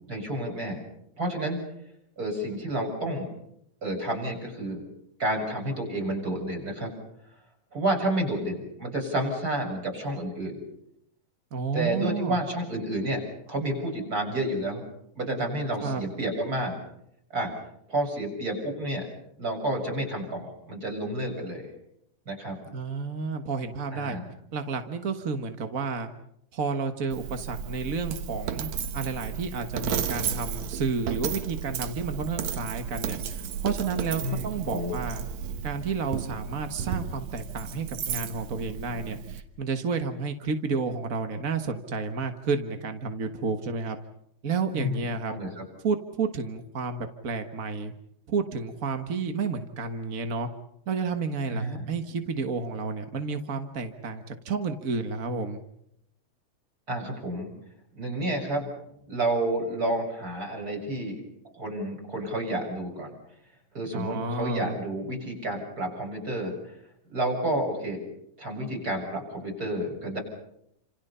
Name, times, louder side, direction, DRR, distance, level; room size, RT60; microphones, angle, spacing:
voice 1, 0.1-0.8 1.2-1.6 2.2-3.3 3.8-4.8 5.2-6.9 7.7-10.6 11.7-14.8 15.2-16.8 17.3-17.5 17.9-19.1 19.4-21.7 22.3-22.6 23.9-24.2 34.2-34.9 44.7-45.0 45.3-45.6 51.5-51.8 56.9-57.5 58.0-58.8 59.1-61.2 61.5-63.1 63.7-66.6 67.1-68.0 68.4-70.2, right 1 dB, 30° right, 2 dB, 7.4 m, -30 dB
voice 2, 11.5-12.4 15.8-16.0 22.7-24.2 24.5-26.1 26.5-35.2 35.6-44.0 44.4-45.3 45.8-47.9 48.3-50.5 50.9-55.6 63.9-64.8, right 4 dB, 50° right, 6 dB, 1.0 m, -31 dB
Coin (dropping), 27.1-39.4, right 7 dB, 65° right, 2.5 m, -33 dB
30.0 x 27.5 x 5.6 m, 0.76 s
omnidirectional pair, 3.5 m